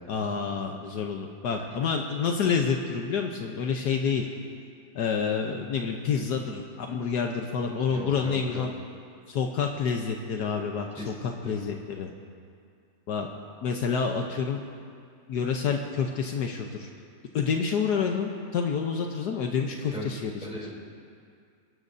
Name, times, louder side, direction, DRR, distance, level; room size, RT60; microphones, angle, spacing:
voice 1, 0.1-4.3 4.9-8.7 9.3-12.1 13.1-13.3 13.6-14.6 15.3-16.9 17.3-20.3, left 6 dB, 70° left, 3 dB, 1.4 m, -28 dB
voice 2, 7.9-8.7 11.0-11.5 13.9-14.0 19.9-20.1 20.4-20.7, equal, 5° right, -5 dB, 3.4 m, -38 dB
26.5 x 13.0 x 2.7 m, 2.3 s
omnidirectional pair, 1.9 m